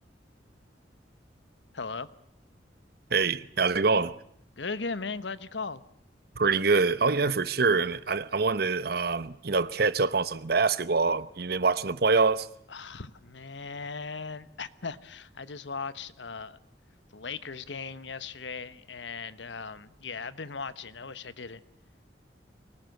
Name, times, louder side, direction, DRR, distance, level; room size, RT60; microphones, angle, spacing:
voice 1, 1.7-2.1 4.6-5.8 12.7-16.6 17.1-21.6, left 4 dB, 80° left, 1.2 m, -38 dB
voice 2, 3.1-4.2 6.4-12.5, right 4 dB, 60° right, 1.0 m, -25 dB
24.0 x 19.5 x 7.9 m
head